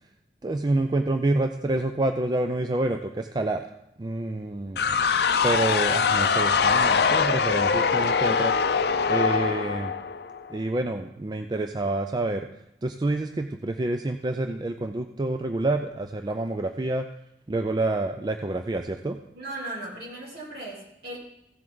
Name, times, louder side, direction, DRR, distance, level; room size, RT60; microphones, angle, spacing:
voice 1, 0.4-3.6 4.0-4.8 5.4-8.5 9.1-9.9 10.5-12.5 12.8-17.1 17.5-19.2, right 2 dB, 25° right, 7 dB, 0.4 m, -27 dB
sound 1, 4.8-10.5, left 5 dB, 65° left, 0.5 m, -23 dB
voice 2, 19.3-21.2, right 1 dB, 60° right, -3 dB, 3.1 m, -37 dB
15.5 x 7.6 x 3.9 m, 0.86 s
head